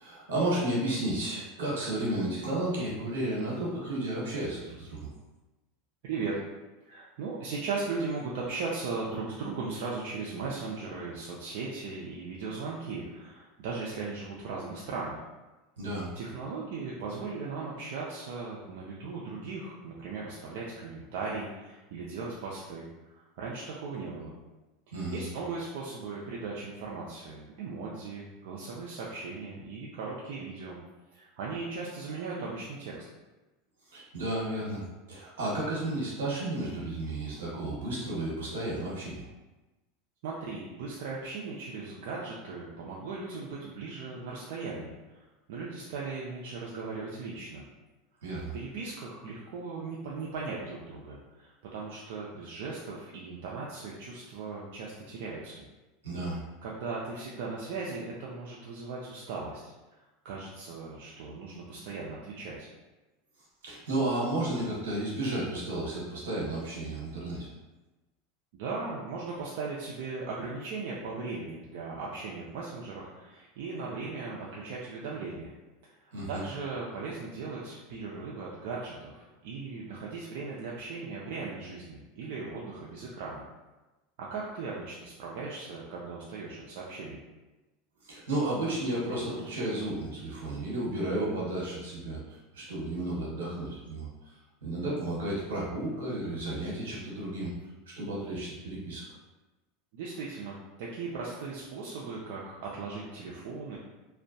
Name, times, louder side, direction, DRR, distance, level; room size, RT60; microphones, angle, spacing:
voice 1, 0.0-5.1 15.8-16.1 24.9-25.2 33.9-39.2 48.2-48.5 56.0-56.4 63.6-67.5 76.1-76.4 88.0-94.1 94.6-97.5 97.9-99.0, right 1 dB, 90° right, -5 dB, 1.0 m, -32 dB
voice 2, 6.0-6.4 6.9-15.2 16.1-24.4 24.9-30.8 31.1-33.0 40.2-45.2 45.5-47.7 48.5-55.6 56.6-59.6 60.2-62.7 68.5-75.5 75.9-83.4 84.2-87.2 99.9-103.8, right 4 dB, 70° right, -5 dB, 0.4 m, -38 dB
2.5 x 2.1 x 2.6 m, 1.1 s
supercardioid pair, 120°, 0 cm